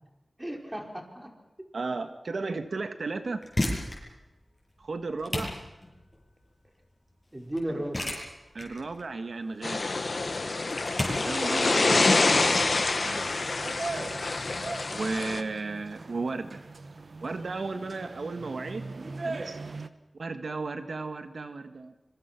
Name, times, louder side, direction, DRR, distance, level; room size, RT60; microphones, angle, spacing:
voice 1, 0.4-1.3 7.3-8.0 11.7-12.2, right 1 dB, 20° right, 2 dB, 5.0 m, -34 dB
voice 2, 1.7-3.4 4.8-5.5 8.5-9.9 11.0-11.9 13.0-13.3 14.9-16.6 17.2-18.9 19.2-19.6 20.1-21.9, right 3 dB, 80° right, 8 dB, 1.7 m, -34 dB
sound 1, 3.2-14.0, left 1 dB, 25° left, 7.7 m, -36 dB
sound 2, 9.6-15.4, left 3 dB, 60° left, 1.6 m, -26 dB
sound 3, 12.3-19.9, right 3 dB, 60° right, 1.3 m, -40 dB
25.5 x 23.5 x 6.0 m, 1.0 s
wide cardioid pair, 75°, 0 cm